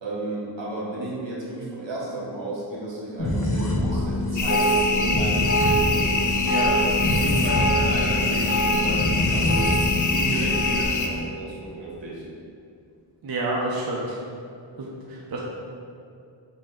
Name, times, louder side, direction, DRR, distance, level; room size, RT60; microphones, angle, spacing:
voice 1, 0.0-6.1 6.7-9.8 10.1-12.2, right 1 dB, 80° right, -5 dB, 1.0 m, -32 dB
sound 1, 3.2-10.9, equal, 30° left, 0.9 m, -24 dB
sound 2, 4.4-11.1, left 4 dB, 45° left, 0.4 m, -26 dB
sound 3, 5.9-11.2, left 1 dB, 70° left, 0.9 m, -35 dB
voice 2, 6.4-7.1 13.2-14.2 14.8-15.4, right 2 dB, 55° right, -4 dB, 0.6 m, -29 dB
6.0 x 2.2 x 3.5 m, 2.4 s
wide cardioid pair, 50°, 44 cm